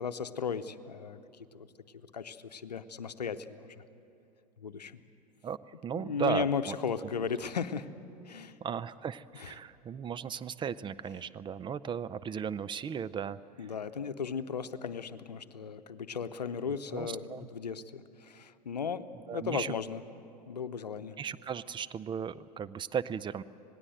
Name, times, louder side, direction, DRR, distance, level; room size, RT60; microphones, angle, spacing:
voice 1, 0.0-1.7 2.1-3.8 4.6-5.0 5.9-7.9 8.2-8.6 9.4-9.5 13.6-20.0 20.5-21.2, left 6 dB, 80° left, 12 dB, 0.8 m, -36 dB
voice 2, 5.8-6.7 8.6-13.7 16.9-17.5 19.3-19.7 21.2-23.4, right 7 dB, 25° right, 15 dB, 0.5 m, -36 dB
26.5 x 18.5 x 7.9 m, 2.8 s
figure-of-eight pair, 80°, 21 cm